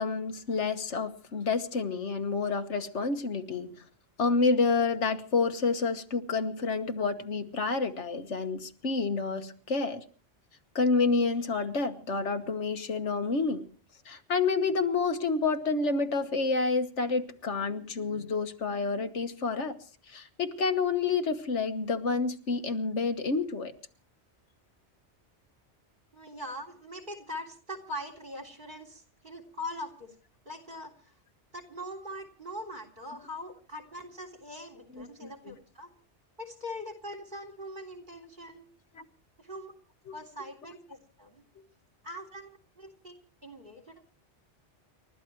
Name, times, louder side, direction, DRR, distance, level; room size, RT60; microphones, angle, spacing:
voice 1, 0.0-3.7 4.2-10.0 10.8-13.6 14.1-19.8 20.1-23.7 34.9-35.6 39.0-39.1 40.1-40.2, left 4 dB, 90° left, 8 dB, 1.6 m, -29 dB
voice 2, 26.1-30.2 30.5-31.1 31.5-35.9 36.4-38.6 39.4-39.7 40.1-41.4 42.0-43.1 43.4-44.0, left 1 dB, 45° right, 5 dB, 3.6 m, -42 dB
29.5 x 13.0 x 3.1 m, 0.39 s
omnidirectional pair, 1.2 m